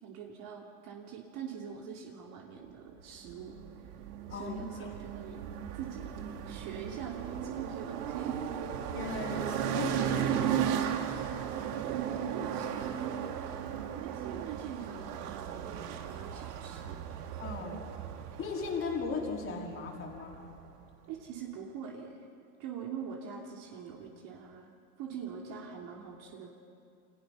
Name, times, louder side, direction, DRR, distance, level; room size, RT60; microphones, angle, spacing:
voice 1, 0.0-3.6 4.3-5.4 5.7-6.1 6.5-8.4 11.9-13.3 13.9-15.2 15.6-17.3 21.1-22.3 22.6-24.7 25.0-26.5, right 7 dB, 45° right, -1 dB, 3.0 m, -43 dB
sound 1, 3.3-20.7, right 9 dB, 75° right, 2.4 m, -36 dB
voice 2, 4.3-4.9 8.9-10.8 17.4-17.8 18.4-20.5, left 4 dB, 25° left, -1 dB, 4.1 m, -37 dB
28.5 x 27.5 x 5.8 m, 2.5 s
supercardioid pair, 145°, 46 cm